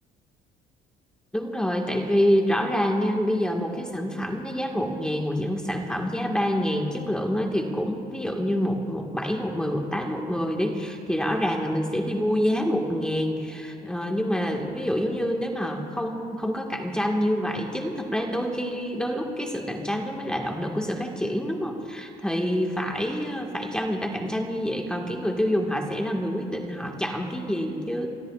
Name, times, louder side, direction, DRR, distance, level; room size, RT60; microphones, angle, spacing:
voice 1, 1.3-28.1, equal, 5° left, 1 dB, 1.6 m, -27 dB
28.0 x 19.5 x 2.4 m, 2.8 s
cardioid pair, 110°, 17 cm